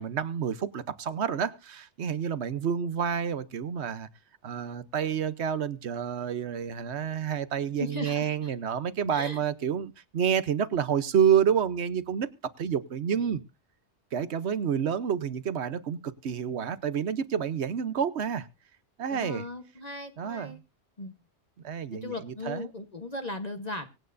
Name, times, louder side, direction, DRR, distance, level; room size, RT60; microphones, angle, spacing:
voice 1, 0.0-4.1 4.4-12.3 12.6-13.4 14.1-18.5 19.0-19.4 20.2-20.6 21.6-22.7, right 8 dB, 70° right, 14 dB, 1.1 m, -29 dB
voice 2, 7.8-8.6 9.1-9.4 19.1-20.6 21.0-21.1 21.9-23.9, left 2 dB, 35° left, 6 dB, 1.2 m, -37 dB
24.5 x 9.0 x 2.6 m, 0.30 s
omnidirectional pair, 1.2 m